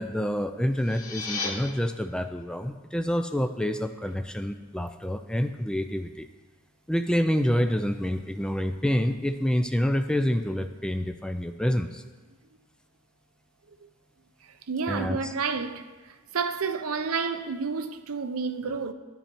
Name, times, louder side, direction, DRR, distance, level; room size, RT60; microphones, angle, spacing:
voice 1, 0.0-6.3 6.9-12.0 14.9-15.3, equal, 5° left, 0.4 m, -27 dB
sound 1, 0.7-1.5, left 4 dB, 70° left, 1.5 m, -33 dB
voice 2, 14.7-15.9 16.3-18.9, right 5 dB, 65° right, 0.6 m, -30 dB
11.0 x 9.5 x 4.5 m
head